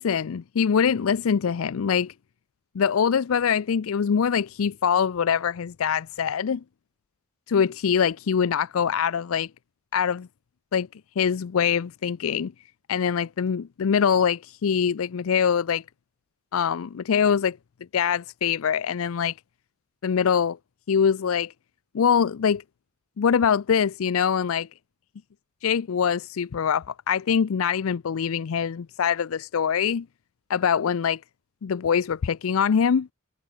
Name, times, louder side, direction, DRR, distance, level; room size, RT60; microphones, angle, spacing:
voice 1, 0.0-2.1 2.8-6.6 7.5-9.5 9.9-10.3 10.7-10.9 11.2-12.5 12.9-15.8 16.5-17.6 17.9-19.3 20.0-20.6 20.9-21.5 21.9-22.6 23.2-24.7 25.6-30.1 30.5-31.2 31.6-33.1, left 7 dB, 75° left, 0.4 m, -23 dB
head